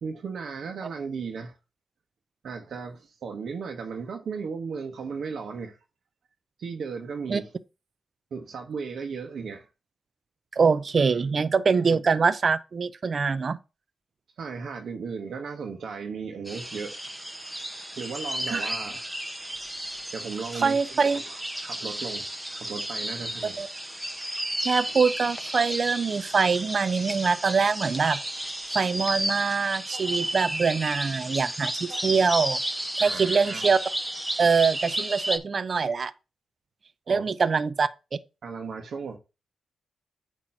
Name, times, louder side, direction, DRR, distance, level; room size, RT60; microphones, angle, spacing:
voice 1, 0.0-1.6 2.4-5.8 6.6-7.5 8.3-9.7 11.0-11.3 14.4-17.0 18.0-19.3 20.1-21.4 21.6-23.6 33.0-33.7 37.1-37.3 38.4-39.2, right 5 dB, 70° right, 1.1 m, -36 dB
voice 2, 10.5-13.6 18.5-18.7 20.6-21.2 23.6-23.7 24.6-28.2 28.7-32.6 33.0-33.8 34.4-36.1 37.1-37.9, right 5 dB, 50° right, 0.5 m, -24 dB
sound 1, 16.4-35.4, right 1 dB, 5° right, 1.0 m, -33 dB
8.8 x 3.0 x 5.7 m
cardioid pair, 85°, 0 cm